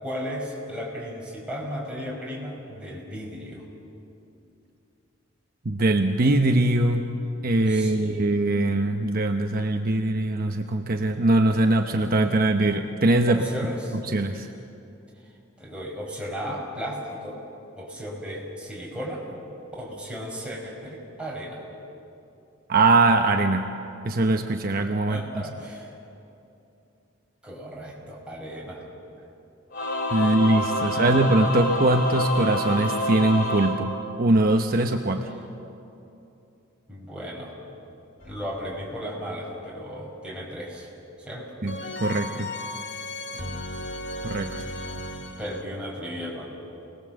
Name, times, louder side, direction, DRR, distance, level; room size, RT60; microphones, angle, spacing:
voice 1, 0.0-3.6 7.7-8.3 13.3-14.0 15.6-17.4 17.8-19.2 19.8-21.6 25.1-25.9 27.4-28.8 30.2-30.4 30.8-31.1 36.9-37.5 38.2-40.9 41.2-41.5 42.0-42.2 43.3-43.6 45.4-46.5, equal, 5° right, -4 dB, 5.7 m, -35 dB
voice 2, 5.6-7.0 7.4-13.4 13.9-14.5 22.7-23.7 24.0-25.2 30.1-35.3 41.6-42.5 44.2-44.5, right 2 dB, 50° right, 4 dB, 1.0 m, -22 dB
Singing / Musical instrument, 29.7-34.6, equal, 50° left, 2.6 m, -27 dB
sound 1, 38.2-39.0 41.7-45.6, left 1 dB, 65° left, 1.8 m, -35 dB
29.0 x 20.0 x 7.8 m, 2.8 s
head